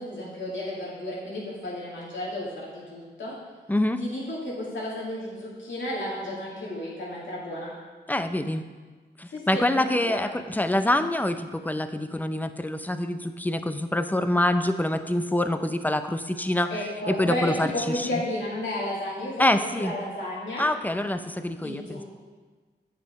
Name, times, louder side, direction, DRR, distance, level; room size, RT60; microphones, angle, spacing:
voice 1, 0.0-3.4 4.0-7.7 9.3-10.3 16.7-20.7 21.6-22.0, left 1 dB, 90° left, -6 dB, 2.7 m, -33 dB
voice 2, 3.7-4.0 8.1-8.6 9.2-18.2 19.4-19.9 20.6-22.0, left 1 dB, 10° left, 9 dB, 0.6 m, -26 dB
8.6 x 5.6 x 5.3 m, 1.4 s
cardioid pair, 65°, 19 cm